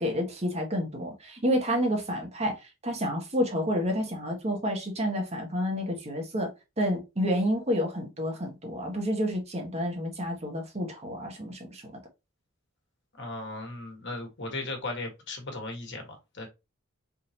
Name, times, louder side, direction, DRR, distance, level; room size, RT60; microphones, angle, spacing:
voice 1, 0.0-2.6 2.8-6.5 6.8-11.8, equal, 30° right, 1.5 m, -29 dB
voice 2, 13.2-16.5, left 2 dB, 60° left, 1.6 m, -37 dB
4.7 x 3.9 x 2.9 m
head